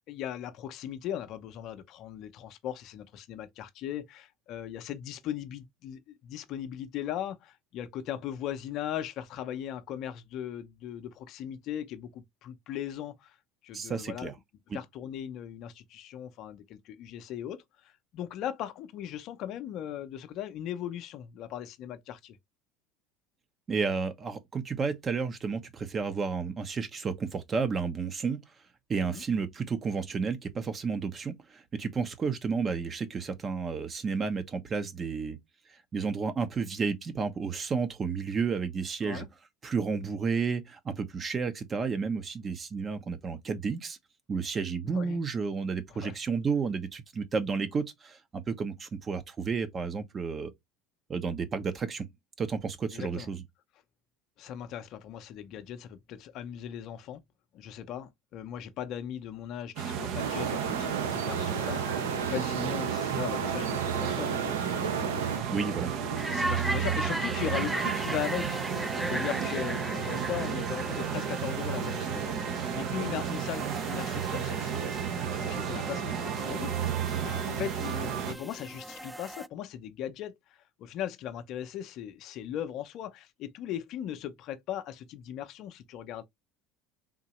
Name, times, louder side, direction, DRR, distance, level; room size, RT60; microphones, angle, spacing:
voice 1, 0.1-13.4 13.6-14.3 14.7-22.4 29.1-29.2 39.0-39.3 44.9-45.2 45.9-46.2 52.9-53.3 54.4-57.2 57.5-65.8 66.3-68.6 69.1-72.3 72.7-74.9 75.3-76.7 77.2-86.2, left 10 dB, 55° left, 0.6 m, -38 dB
voice 2, 13.7-14.3 23.7-28.4 28.9-35.4 35.9-39.2 39.6-44.0 44.3-50.5 51.1-52.1 52.4-53.4 65.5-65.9, right 5 dB, 30° right, 0.8 m, -31 dB
sound 1, 59.8-78.3, right 8 dB, 60° right, 0.9 m, -32 dB
sound 2, 60.2-65.4, right 6 dB, 90° right, 0.5 m, -34 dB
sound 3, 66.2-79.5, right 1 dB, 5° right, 0.3 m, -38 dB
3.7 x 2.7 x 3.0 m
hypercardioid pair, 75°, 0 cm